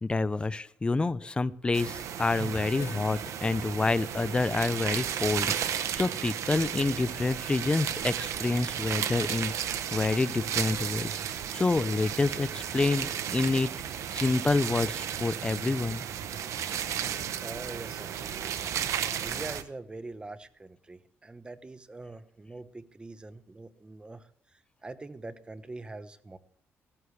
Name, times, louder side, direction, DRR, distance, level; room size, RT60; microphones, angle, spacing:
voice 1, 0.0-9.5 9.9-11.1 11.5-13.7 14.1-16.0, left 3 dB, 20° left, 16 dB, 0.5 m, -28 dB
sound 1, 1.7-19.6, right 9 dB, 70° right, 0.9 m, -34 dB
Bathtub (filling or washing) / Splash splatter, 2.6-8.2 9.1-9.3 10.7-10.8, left 5 dB, 85° left, 4.2 m, -54 dB
voice 2, 17.4-18.7 19.2-26.4, right 2 dB, 20° right, 11 dB, 1.0 m, -44 dB
16.0 x 14.5 x 3.3 m, 0.69 s
cardioid pair, 120°, 5 cm